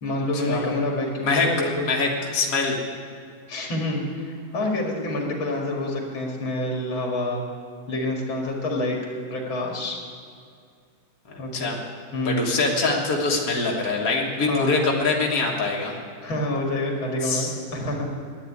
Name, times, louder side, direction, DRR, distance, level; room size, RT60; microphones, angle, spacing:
voice 1, 0.0-1.9 3.5-7.4 7.9-9.0 9.3-10.0 11.4-11.7 12.1-12.5 14.5-14.8 16.2-18.1, left 1 dB, 85° left, 0 dB, 2.8 m, -27 dB
voice 2, 1.8-2.8 11.3-11.8 12.3-16.0 17.2-17.5, left 3 dB, 45° left, -2 dB, 1.8 m, -24 dB
10.0 x 9.2 x 9.8 m, 2.2 s
omnidirectional pair, 2.1 m